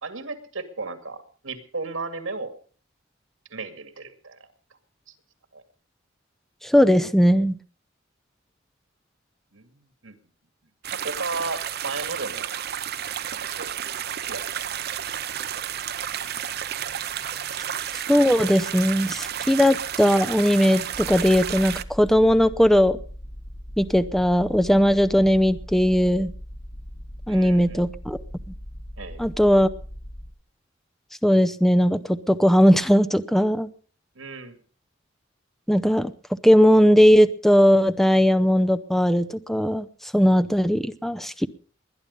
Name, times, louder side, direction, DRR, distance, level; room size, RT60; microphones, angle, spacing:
voice 1, 0.0-2.5 3.5-4.5 5.1-5.2 5.5-5.6 9.5-10.1 10.9-12.5 13.3-13.8 14.2-14.4 15.5-15.6 27.3-27.8 29.0-29.3 34.2-34.6, right 3 dB, 85° right, 2.2 m, -35 dB
voice 2, 6.6-7.5 18.1-23.0 23.8-26.3 27.3-28.2 29.2-29.7 31.2-33.7 35.7-36.1 36.4-39.9 40.1-41.5, equal, ahead, 0.6 m, -18 dB
sound 1, 10.8-21.8, right 10 dB, 55° right, 0.7 m, -31 dB
sound 2, 20.9-30.3, equal, 85° left, 7.0 m, -39 dB
20.5 x 10.5 x 5.4 m
head